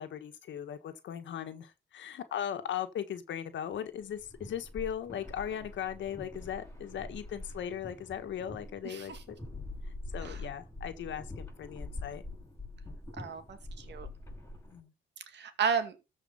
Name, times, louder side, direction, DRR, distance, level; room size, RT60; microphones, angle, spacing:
voice 1, 0.0-9.3 10.1-12.2 14.7-14.9, left 9 dB, 70° left, 1.5 m, -38 dB
sound 1, 4.0-14.8, left 2 dB, 10° left, 6.3 m, -45 dB
voice 2, 8.8-9.2 10.2-10.4 13.2-14.1 15.3-16.0, right 6 dB, 60° right, 2.2 m, -33 dB
13.5 x 4.9 x 5.6 m
cardioid pair, 90°, 20 cm